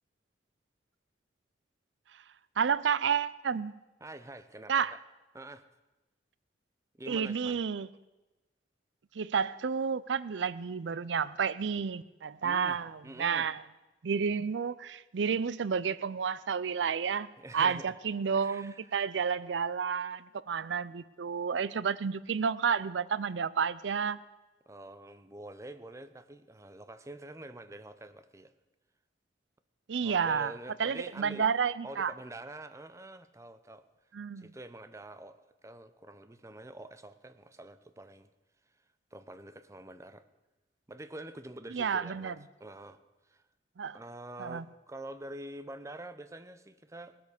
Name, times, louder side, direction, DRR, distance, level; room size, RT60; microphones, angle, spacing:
voice 1, 2.6-3.7 4.7-4.9 7.1-7.9 9.1-12.9 13.2-13.6 14.0-24.2 29.9-30.5 30.8-32.1 34.1-34.5 41.7-42.3 43.8-44.0 44.4-44.6, right 6 dB, 85° right, 18 dB, 0.5 m, -31 dB
voice 2, 4.0-5.0 5.3-5.7 7.0-7.6 12.4-13.5 17.4-17.9 18.3-18.9 24.7-28.5 30.0-31.5 31.8-33.9 34.4-38.3 39.1-40.3 40.9-43.4 43.9-47.2, right 1 dB, 15° right, 11 dB, 0.6 m, -46 dB
18.5 x 8.4 x 6.6 m, 1.1 s
head